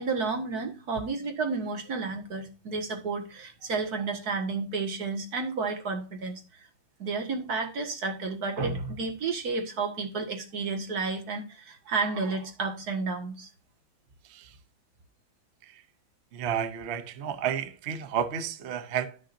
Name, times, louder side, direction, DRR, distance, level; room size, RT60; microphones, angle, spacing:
voice 1, 0.0-6.7 7.0-13.5, right 4 dB, 50° right, 2.1 m, -31 dB
voice 2, 14.2-14.6 15.6-15.8 16.3-19.2, right 8 dB, 70° right, 0.6 m, -32 dB
12.5 x 6.5 x 2.6 m
omnidirectional pair, 2.1 m